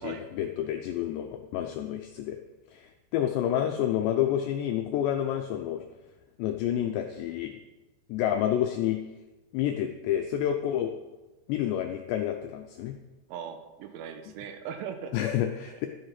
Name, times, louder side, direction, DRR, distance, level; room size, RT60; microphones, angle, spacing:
voice 1, 0.0-2.4 2.7-5.8 6.4-7.6 8.1-9.0 9.5-10.9 11.5-12.9 15.1-15.9, left 11 dB, 85° left, 5 dB, 2.5 m, -29 dB
voice 2, 13.3-15.1, right 7 dB, 80° right, 6 dB, 3.3 m, -39 dB
12.5 x 8.0 x 5.8 m, 1.1 s
omnidirectional pair, 5.8 m